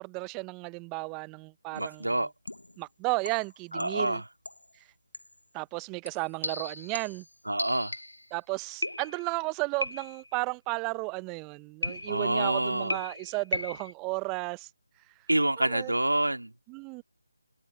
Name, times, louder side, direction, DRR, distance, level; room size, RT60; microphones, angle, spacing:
voice 1, 0.0-2.1 2.8-4.2 5.5-7.2 8.3-14.7 15.6-15.9 16.7-17.0, right 29 dB, 15° right, 1.0 m, -34 dB
sound 1, 1.7-2.0 2.5-2.8 3.3-4.1 4.4-4.7 5.1-5.4 6.1-8.3 8.8-9.4 9.8-10.4 11.8-12.4 12.9-13.9, left 1 dB, 80° left, 1.2 m, -37 dB
voice 2, 1.7-2.3 3.7-4.2 7.5-7.9 12.1-13.0 15.3-16.5, right 1 dB, 80° right, 2.5 m, -27 dB
figure-of-eight pair, 155°, 0 cm